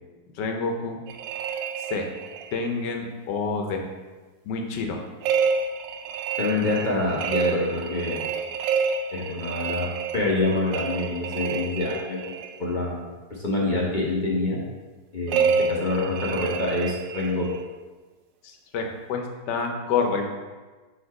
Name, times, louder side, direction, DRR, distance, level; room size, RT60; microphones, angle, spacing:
voice 1, 0.4-1.0 1.8-2.0 2.5-3.8 4.4-5.0 18.4-20.3, left 4 dB, 70° left, 3 dB, 1.3 m, -28 dB
sound 1, 1.1-2.6 5.2-12.6 15.3-17.6, right 6 dB, 75° right, 1.2 m, -28 dB
voice 2, 6.4-8.2 9.1-9.9 10.1-13.0 13.3-14.6 15.1-17.4, left 2 dB, 35° left, -4 dB, 0.8 m, -26 dB
5.3 x 4.4 x 4.7 m, 1.3 s
omnidirectional pair, 2.0 m